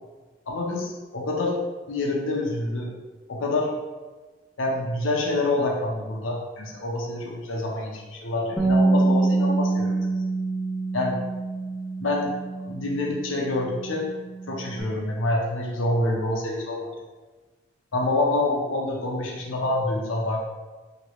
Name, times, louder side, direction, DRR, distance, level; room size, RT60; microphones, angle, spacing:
voice 1, 0.5-1.6 1.9-2.9 3.3-3.7 4.6-10.0 10.9-11.2 12.0-12.3 12.7-14.1 14.5-16.9 17.9-20.4, left 2 dB, 85° left, -1 dB, 0.7 m, -27 dB
Bass guitar, 8.6-14.8, right 3 dB, ahead, 0.3 m, -26 dB
3.0 x 2.9 x 3.0 m, 1.3 s
head